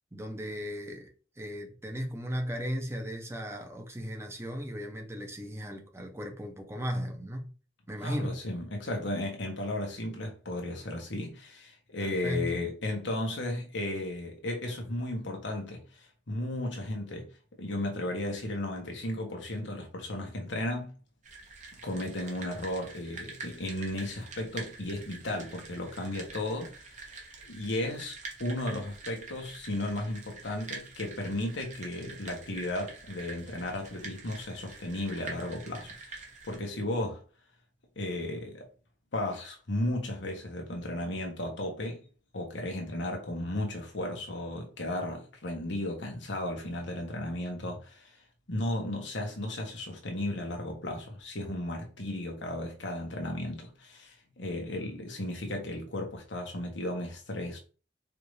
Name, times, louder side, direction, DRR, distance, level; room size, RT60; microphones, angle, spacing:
voice 1, 0.1-1.1 1.4-7.5 7.9-8.4 12.0-12.6, equal, 15° right, 0.8 m, -36 dB
voice 2, 8.0-17.3 17.6-20.9 21.8-37.2 38.0-38.7 39.1-42.0 42.3-48.2 48.5-57.6, left 1 dB, 85° left, 1.2 m, -35 dB
sound 1, 21.2-36.6, right 3 dB, 45° right, 1.0 m, -46 dB
4.8 x 2.6 x 3.2 m
head